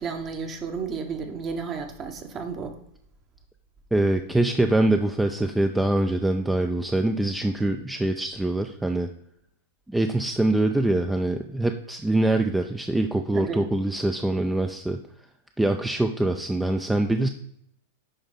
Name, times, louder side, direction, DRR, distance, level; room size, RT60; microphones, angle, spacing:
voice 1, 0.0-2.8 13.3-13.7, right 5 dB, 35° right, 6 dB, 1.1 m, -32 dB
voice 2, 3.9-9.1 9.9-15.0 15.6-17.3, right 2 dB, 5° right, 6 dB, 0.4 m, -24 dB
10.0 x 3.5 x 4.0 m, 0.71 s
hypercardioid pair, 110°, 0 cm